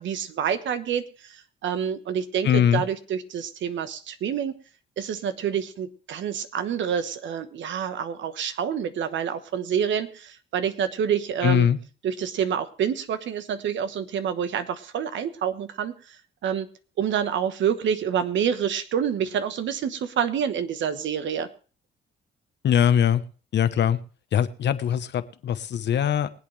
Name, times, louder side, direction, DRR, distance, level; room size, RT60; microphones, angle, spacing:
voice 1, 0.0-1.3 1.6-4.5 5.0-11.7 12.0-15.9 16.4-16.7 17.0-21.5, right 8 dB, 70° right, 1.2 m, -27 dB
voice 2, 2.4-2.8 11.4-11.8 22.6-23.2 23.5-24.0 24.3-26.3, left 9 dB, 60° left, 1.0 m, -21 dB
23.5 x 8.2 x 3.3 m
cardioid pair, 90°, 20 cm